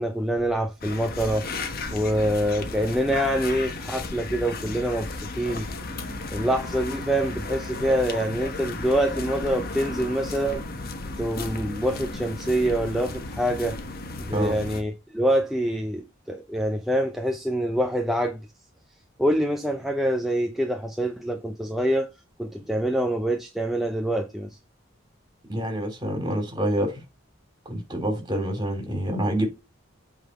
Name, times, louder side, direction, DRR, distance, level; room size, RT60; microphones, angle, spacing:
voice 1, 0.0-1.5 1.9-5.1 5.4-5.7 6.3-10.6 11.2-13.8 14.2-18.4 19.2-22.1 22.4-24.6, right 1 dB, ahead, 0.6 m, -25 dB
sound 1, 0.8-14.8, left 3 dB, 50° left, 1.2 m, -34 dB
voice 2, 25.5-27.0 27.6-29.5, right 1 dB, 20° right, 2.8 m, -27 dB
8.3 x 3.9 x 4.2 m
head